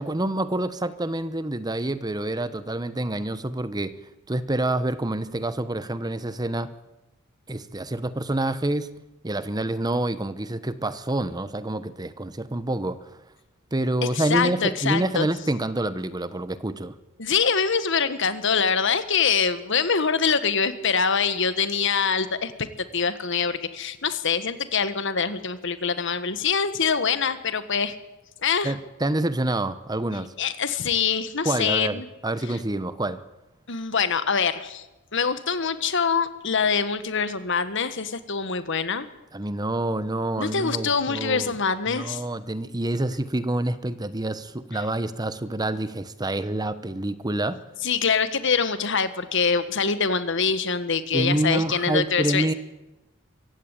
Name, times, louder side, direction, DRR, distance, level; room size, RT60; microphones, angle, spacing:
voice 1, 0.0-3.9 4.3-6.7 7.5-8.9 9.2-13.0 13.7-16.9 28.6-30.3 31.4-33.2 39.3-41.5 41.9-47.6 51.1-52.5, right 1 dB, 20° right, 14 dB, 1.0 m, -27 dB
voice 2, 14.1-15.3 17.2-22.7 22.9-27.9 28.4-28.7 30.4-32.0 33.7-34.8 35.1-39.1 40.4-42.2 47.8-52.5, left 6 dB, 65° left, 12 dB, 1.6 m, -24 dB
24.0 x 15.5 x 9.1 m, 1.0 s
head